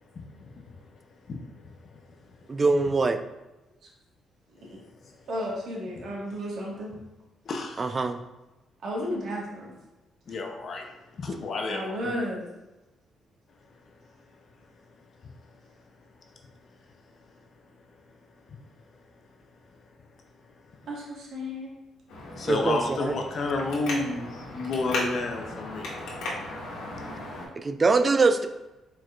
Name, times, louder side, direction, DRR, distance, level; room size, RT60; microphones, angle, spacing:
voice 1, 0.1-0.9 1.2-2.4 4.7-4.8 5.0-5.2 6.0-6.4 6.9-7.0 7.5-8.0 10.3-12.1 13.9-14.0 15.2-15.5 17.8-17.9 18.5-18.6 20.6-20.7 22.3-25.9, left 3 dB, 50° left, 3 dB, 0.6 m, -32 dB
voice 2, 2.5-3.2 7.8-8.2 22.5-23.1 27.6-28.5, right 3 dB, 30° right, 10 dB, 0.4 m, -23 dB
voice 3, 5.3-6.9 8.8-9.7 11.7-12.4 20.9-21.7, equal, 65° right, -3 dB, 1.5 m, -33 dB
Traffic noise roadway noise, 22.1-27.5, left 2 dB, 80° left, 1.4 m, -36 dB
4.5 x 4.3 x 2.4 m, 1.0 s
cardioid pair, 90°, 0 cm